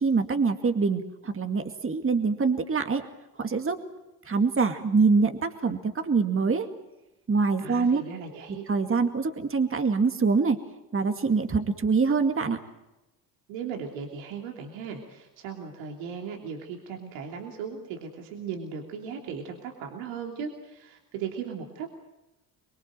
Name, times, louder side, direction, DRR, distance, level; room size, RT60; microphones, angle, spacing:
voice 1, 0.0-3.0 3.4-3.8 4.3-6.7 7.3-8.0 8.7-10.6 10.9-12.6, right 4 dB, 25° right, 7 dB, 2.3 m, -24 dB
voice 2, 7.6-8.6 13.5-22.0, right 6 dB, 75° right, 2 dB, 3.2 m, -37 dB
25.0 x 22.5 x 7.7 m, 0.96 s
hypercardioid pair, 60°, 46 cm